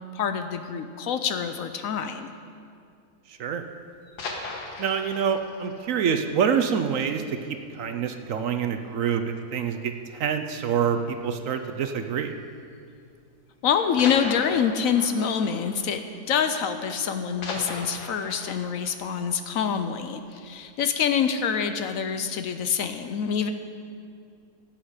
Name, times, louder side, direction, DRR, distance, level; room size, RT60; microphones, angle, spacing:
voice 1, 0.1-2.3 13.6-23.5, left 7 dB, 70° left, 8 dB, 0.9 m, -26 dB
sound 1, 3.9-7.5 7.8-7.9 8.3-8.5 8.8-8.9 9.8-10.2 11.4-11.6 12.5-12.6 14.0-16.8 17.0-20.2 20.6-20.7, left 3 dB, 85° left, 1.8 m, -39 dB
voice 2, 4.8-7.4 7.7-12.3, right 7 dB, 65° right, 7 dB, 0.9 m, -26 dB
16.0 x 8.8 x 4.9 m, 2.4 s
omnidirectional pair, 1.7 m